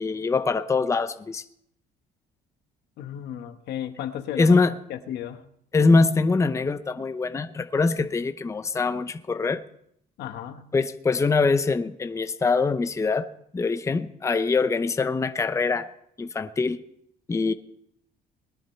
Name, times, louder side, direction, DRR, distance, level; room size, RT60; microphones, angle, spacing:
voice 1, 0.0-1.4 4.4-4.7 5.7-9.6 10.7-13.3 13.5-15.9 16.2-16.8 17.3-17.5, left 4 dB, 15° left, 10 dB, 0.7 m, -23 dB
voice 2, 3.0-4.5 4.9-5.4 10.2-10.7, left 10 dB, 75° left, 8 dB, 1.2 m, -34 dB
20.0 x 11.0 x 4.4 m, 0.72 s
cardioid pair, 110°, 17 cm